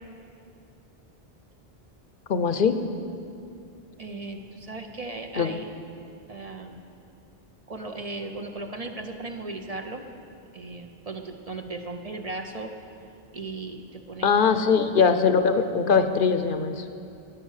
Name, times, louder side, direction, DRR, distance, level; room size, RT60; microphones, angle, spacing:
voice 1, 2.3-2.8 5.4-5.5 14.2-16.8, left 5 dB, 60° left, 9 dB, 0.8 m, -21 dB
voice 2, 4.0-5.7 6.3-6.8 7.7-10.1 10.5-12.7 13.3-14.4, right 3 dB, 40° right, 4 dB, 0.8 m, -36 dB
15.5 x 9.1 x 6.5 m, 2.6 s
omnidirectional pair, 1.0 m